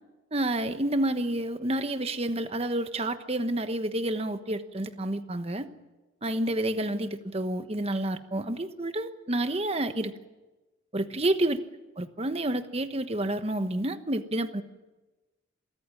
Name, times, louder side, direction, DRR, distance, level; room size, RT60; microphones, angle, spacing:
voice 1, 0.3-5.7 6.2-10.1 10.9-11.6 12.0-14.6, right 1 dB, 30° right, 9 dB, 1.1 m, -29 dB
26.0 x 14.0 x 9.9 m, 1.1 s
head